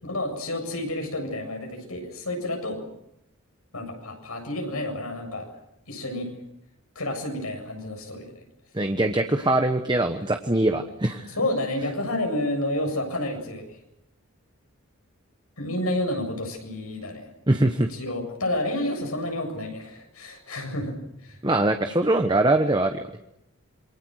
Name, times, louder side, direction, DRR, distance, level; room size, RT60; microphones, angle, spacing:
voice 1, 0.0-2.8 3.7-5.6 5.9-6.3 7.0-8.3 11.4-13.8 15.6-17.3 17.9-21.0 21.2-21.4, left 1 dB, 80° left, 4 dB, 7.6 m, -30 dB
voice 2, 8.7-11.3 17.5-17.9 21.4-23.0, right 2 dB, 20° right, 6 dB, 1.2 m, -22 dB
27.0 x 24.0 x 6.5 m, 0.82 s
head